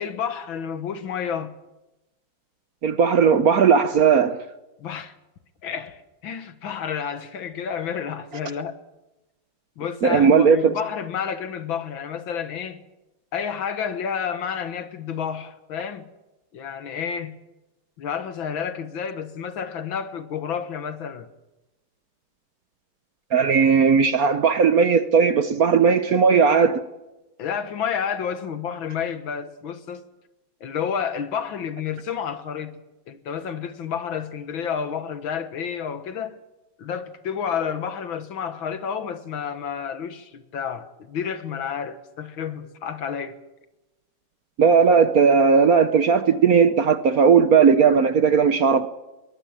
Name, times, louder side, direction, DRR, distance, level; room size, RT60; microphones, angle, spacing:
voice 1, 0.0-1.6 4.8-5.1 5.6-8.8 9.8-12.8 13.3-16.1 16.5-17.4 18.0-21.3 27.4-30.0 30.6-36.4 36.8-43.4, left 7 dB, 70° left, 2.1 m, -30 dB
voice 2, 2.8-4.4 10.0-10.7 23.3-26.8 44.6-48.9, right 6 dB, 55° right, 1.1 m, -17 dB
22.0 x 19.0 x 7.5 m
omnidirectional pair, 2.3 m